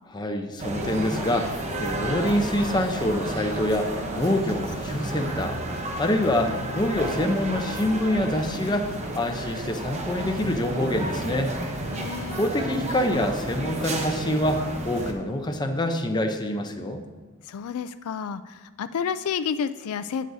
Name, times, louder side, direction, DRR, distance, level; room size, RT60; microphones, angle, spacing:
voice 1, 0.1-5.6 6.0-11.5 12.3-17.0, left 1 dB, 20° left, 4 dB, 0.7 m, -26 dB
sound 1, 0.6-15.1, right 1 dB, 30° right, 0.9 m, -31 dB
voice 2, 11.9-12.5 17.4-20.3, left 7 dB, 90° left, 12 dB, 0.4 m, -30 dB
17.0 x 6.3 x 2.7 m, 1.4 s
head